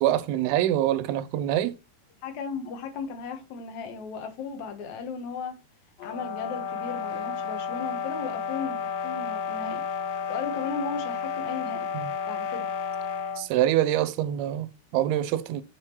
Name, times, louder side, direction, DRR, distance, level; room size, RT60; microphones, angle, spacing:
voice 1, 0.0-1.7 11.9-12.1 13.4-15.6, right 12 dB, 80° right, 2.6 m, -25 dB
voice 2, 2.2-5.5 6.0-9.8 10.3-11.9 12.2-12.7, left 5 dB, 60° left, 2.1 m, -36 dB
sound 1, 6.0-13.5, left 6 dB, 80° left, 2.1 m, -32 dB
8.8 x 5.0 x 3.1 m
omnidirectional pair, 4.8 m